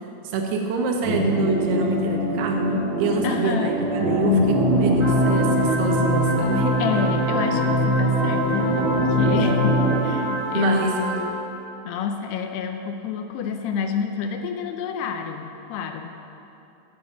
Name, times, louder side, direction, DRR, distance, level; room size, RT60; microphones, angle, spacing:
voice 1, 0.2-2.6 3.0-6.7 10.5-10.9, right 4 dB, 75° right, 1 dB, 3.1 m, -26 dB
sound 1, 1.0-10.0, equal, 25° right, 3.6 m, -22 dB
voice 2, 3.2-3.7 5.6-5.8 6.8-11.4 11.8-16.2, left 6 dB, 80° left, 6 dB, 2.7 m, -28 dB
sound 2, 5.0-11.3, right 1 dB, 45° right, 4.8 m, -29 dB
12.0 x 6.9 x 8.6 m, 2.8 s
omnidirectional pair, 4.9 m